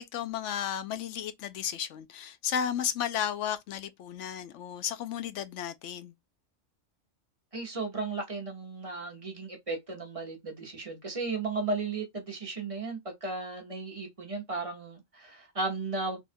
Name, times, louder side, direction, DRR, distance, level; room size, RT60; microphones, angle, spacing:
voice 1, 0.0-6.1, left 9 dB, 75° left, 0.9 m, -33 dB
voice 2, 7.5-16.2, right 3 dB, 30° right, 0.9 m, -35 dB
3.5 x 2.3 x 2.5 m
omnidirectional pair, 1.3 m